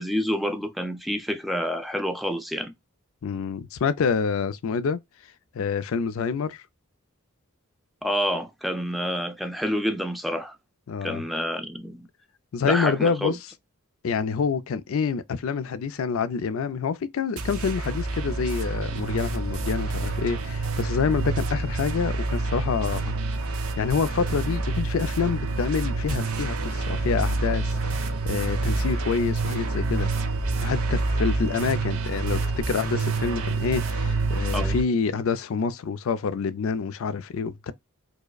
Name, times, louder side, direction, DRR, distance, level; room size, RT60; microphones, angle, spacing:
voice 1, 0.0-2.7 8.0-10.6 11.0-12.1 12.6-13.4 34.5-34.8, equal, ahead, 0.5 m, -28 dB
voice 2, 3.2-5.0 5.5-6.6 10.9-11.2 12.5-13.4 14.0-23.1 23.8-27.8 28.2-30.1 30.6-37.7, left 5 dB, 70° left, 0.4 m, -27 dB
sound 1, 17.4-34.8, right 3 dB, 90° right, 0.8 m, -27 dB
4.7 x 2.1 x 2.2 m
head